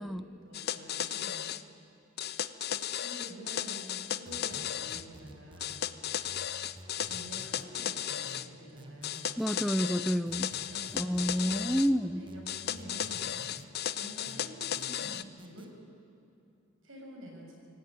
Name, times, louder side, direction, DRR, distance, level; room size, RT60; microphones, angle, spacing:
voice 1, 0.0-1.5 2.7-5.8 7.0-9.4 10.7-15.8 16.8-17.5, right 1 dB, 75° right, 0 dB, 6.7 m, -48 dB
sound 1, 0.5-1.6 2.2-5.0 5.6-8.5 9.0-11.9 12.5-15.2, left 10 dB, 55° left, 0.7 m, -35 dB
sound 2, 4.3-5.8 6.3-7.7 8.3-9.7 10.3-11.8 12.3-13.7 14.3-15.7, right 1 dB, 25° right, 1.8 m, -51 dB
voice 2, 9.4-10.5 10.9-12.2, equal, ahead, 12 dB, 0.5 m, -29 dB
25.5 x 18.0 x 8.8 m, 2.7 s
head